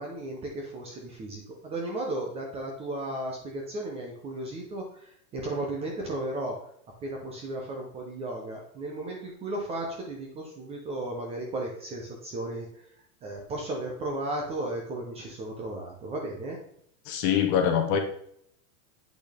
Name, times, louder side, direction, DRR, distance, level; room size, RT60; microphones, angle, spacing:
voice 1, 0.0-6.7 7.0-12.9 13.2-16.6, right 1 dB, 15° right, 0 dB, 0.7 m, -35 dB
voice 2, 17.1-18.0, left 8 dB, 30° left, 5 dB, 0.9 m, -24 dB
8.5 x 6.0 x 3.4 m, 0.68 s
supercardioid pair, 165°, 45 cm